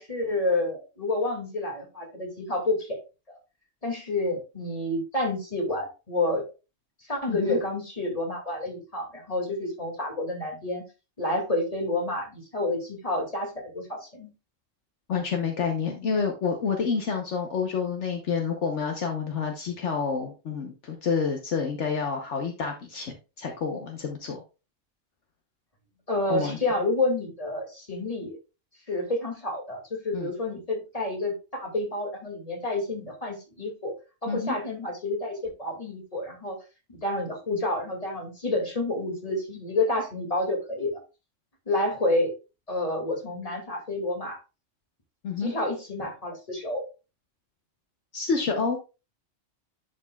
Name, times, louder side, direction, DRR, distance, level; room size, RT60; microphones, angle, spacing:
voice 1, 0.0-3.0 3.3-3.4 3.8-6.4 7.1-10.8 11.2-14.3 26.1-28.4 28.9-33.9 34.2-36.6 36.9-41.0 41.7-42.3 42.7-44.4 45.4-46.8, left 2 dB, 30° left, 0 dB, 2.3 m, -29 dB
voice 2, 7.3-7.6 15.1-24.4 26.3-26.6 30.1-30.3 34.3-34.6 45.2-45.5 48.1-48.8, left 5 dB, 70° left, 3 dB, 1.3 m, -28 dB
11.0 x 5.3 x 2.3 m, 0.30 s
omnidirectional pair, 1.3 m